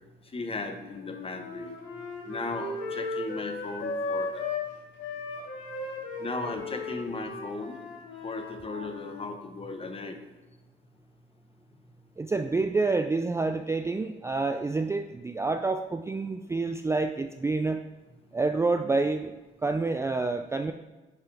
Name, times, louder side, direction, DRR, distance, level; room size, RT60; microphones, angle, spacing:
voice 1, 0.3-1.7 2.3-4.4 6.2-7.8 8.2-10.2, left 3 dB, 30° left, 6 dB, 1.0 m, -36 dB
Wind instrument woodwind instrument, 0.8-4.7 5.0-9.3, left 3 dB, 75° left, 2.1 m, -36 dB
voice 2, 12.2-17.8 18.3-19.3 19.6-20.7, right 3 dB, 15° right, 7 dB, 0.3 m, -28 dB
10.5 x 5.5 x 3.4 m, 1.1 s
cardioid pair, 90°, 20 cm